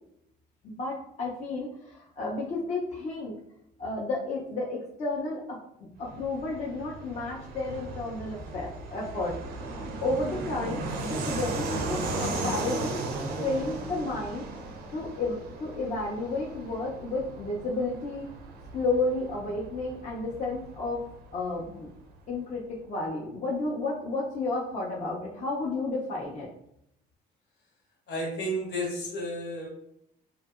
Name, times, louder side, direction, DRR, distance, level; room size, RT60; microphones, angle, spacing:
voice 1, 0.6-1.7 2.2-3.4 3.8-9.4 10.0-13.0 13.4-14.5 14.9-18.3 18.7-21.0 21.3-21.9 22.3-26.5, left 2 dB, 45° left, -4 dB, 0.5 m, -32 dB
Fixed-wing aircraft airplane, 6.0-22.2, right 2 dB, 70° right, 0.4 m, -36 dB
voice 2, 28.1-29.7, equal, 75° left, -2 dB, 1.1 m, -32 dB
2.7 x 2.4 x 2.4 m, 0.76 s
cardioid pair, 110°, 17 cm